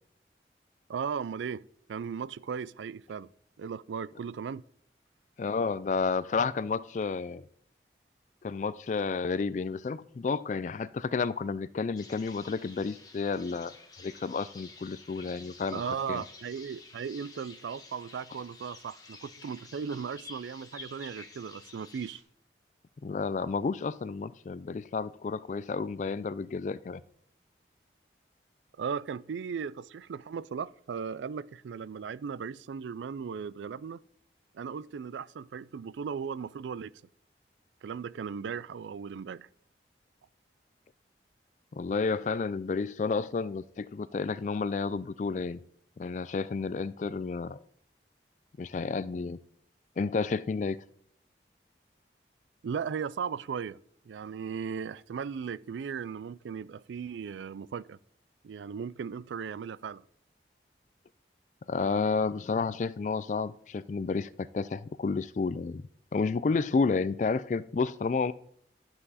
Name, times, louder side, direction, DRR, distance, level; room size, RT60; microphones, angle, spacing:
voice 1, 0.9-3.3 3.6-4.6 15.7-22.2 28.8-34.0 34.5-36.9 37.8-39.5 52.6-58.0 58.4-60.0, right 6 dB, 85° right, 0.4 m, -37 dB
voice 2, 5.4-7.4 8.4-13.7 14.0-16.2 23.0-27.0 41.7-45.6 46.0-47.6 48.6-49.4 50.0-50.8 61.7-65.8 66.1-68.3, left 4 dB, 40° left, 0.3 m, -31 dB
sound 1, 12.0-22.2, left 3 dB, 20° left, 1.4 m, -51 dB
11.0 x 7.6 x 4.1 m
head